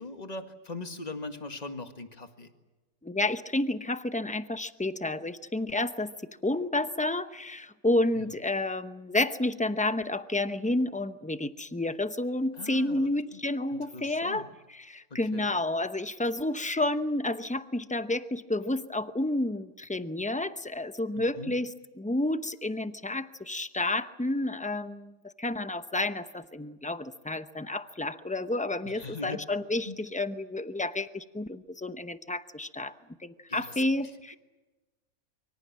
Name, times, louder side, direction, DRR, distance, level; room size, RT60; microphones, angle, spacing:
voice 1, 0.0-2.5 8.2-8.3 12.5-13.4 13.9-14.5 15.1-15.5 21.2-21.5 28.8-29.4 29.8-30.0 33.5-33.8 34.3-34.4, left 3 dB, 25° left, 7 dB, 1.9 m, -41 dB
voice 2, 3.0-32.9 33.2-34.4, left 2 dB, 10° left, 11 dB, 0.5 m, -30 dB
25.0 x 24.5 x 7.5 m, 1.2 s
omnidirectional pair, 1.5 m